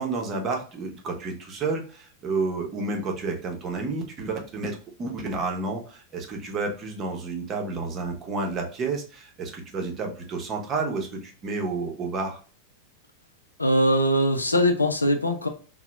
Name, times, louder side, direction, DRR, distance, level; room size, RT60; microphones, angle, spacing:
voice 1, 0.0-12.4, right 3 dB, 30° right, 2 dB, 0.7 m, -30 dB
voice 2, 13.6-15.5, equal, 80° left, 5 dB, 0.4 m, -21 dB
2.8 x 2.0 x 3.2 m, 0.39 s
figure-of-eight pair, 90°, 0 cm